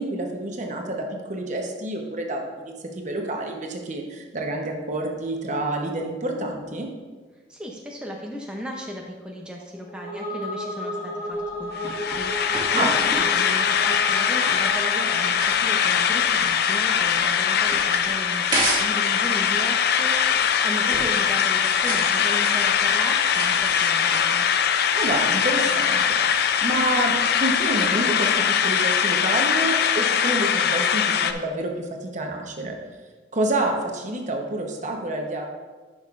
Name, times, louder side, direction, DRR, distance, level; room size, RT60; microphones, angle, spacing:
voice 1, 0.0-6.9 12.7-12.9 24.9-32.7 33.3-35.5, right 1 dB, 45° right, 2 dB, 0.9 m, -28 dB
voice 2, 7.5-24.5, equal, 5° right, -1 dB, 0.6 m, -36 dB
sound 1, 9.8-15.6, left 1 dB, 25° left, 1.7 m, -32 dB
sound 2, 11.3-19.0 19.3-28.4, right 1 dB, 25° right, 1.6 m, -35 dB
sound 3, 11.7-31.3, left 8 dB, 60° left, 0.4 m, -22 dB
10.5 x 6.4 x 2.5 m, 1.4 s
head